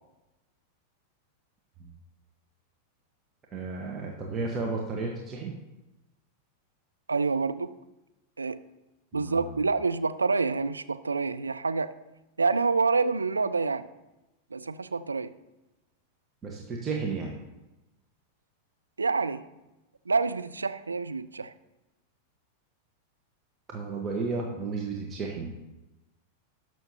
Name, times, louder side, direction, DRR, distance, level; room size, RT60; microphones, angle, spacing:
voice 1, 3.5-5.5 9.1-9.6 16.4-17.4 23.7-25.5, right 4 dB, 25° right, -1 dB, 1.3 m, -33 dB
voice 2, 7.1-7.7 8.4-8.6 9.1-11.9 12.4-13.9 14.5-15.3 19.0-19.4 20.1-21.5, right 4 dB, 75° right, 12 dB, 0.5 m, -27 dB
19.0 x 6.3 x 2.9 m, 0.99 s
figure-of-eight pair, 90°, 0 cm